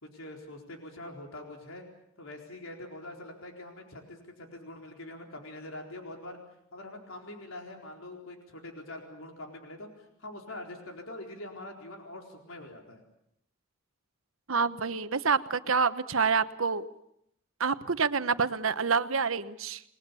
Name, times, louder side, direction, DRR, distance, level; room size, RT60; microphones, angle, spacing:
voice 1, 0.0-1.8 2.2-6.4 6.7-13.0, left 1 dB, 80° left, 2 dB, 4.2 m, -44 dB
voice 2, 14.5-16.9 17.6-19.8, right 5 dB, 75° right, 12 dB, 1.1 m, -27 dB
29.0 x 21.0 x 7.0 m, 0.75 s
head